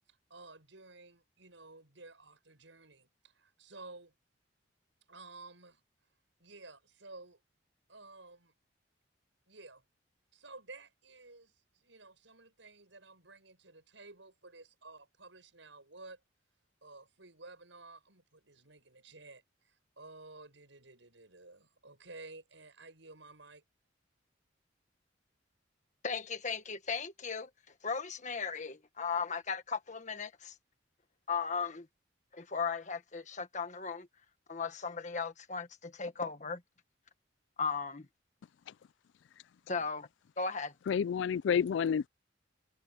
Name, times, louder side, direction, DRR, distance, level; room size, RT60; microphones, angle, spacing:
voice 1, 0.3-4.1 5.1-5.8 6.4-7.4 7.9-8.5 9.5-9.8 10.3-16.2 16.8-23.6, right 3 dB, 75° right, 6.9 m, -53 dB
voice 2, 26.0-27.5 27.8-30.5 31.3-31.9 32.3-34.1 34.5-36.6 37.6-38.1 39.7-40.1 40.4-40.7, left 5 dB, 40° left, 1.6 m, -36 dB
voice 3, 40.9-42.1, left 7 dB, 70° left, 0.3 m, -29 dB
head